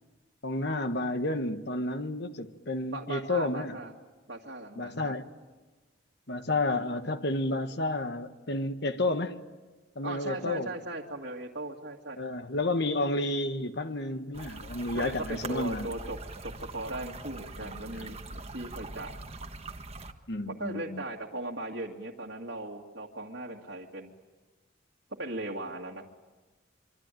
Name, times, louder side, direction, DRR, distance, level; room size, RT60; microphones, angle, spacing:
voice 1, 0.4-3.8 4.8-5.3 6.3-9.4 9.9-10.7 12.2-15.9 17.6-18.2 20.3-21.0, left 2 dB, 55° left, 1.5 m, -31 dB
voice 2, 2.9-3.9 4.3-5.2 6.7-6.8 10.0-12.2 14.9-16.2 16.5-19.2 20.4-24.1 25.1-26.0, right 2 dB, 60° right, 2.1 m, -38 dB
sound 1, 14.3-20.1, right 3 dB, 30° right, 1.4 m, -42 dB
25.5 x 25.0 x 9.2 m
head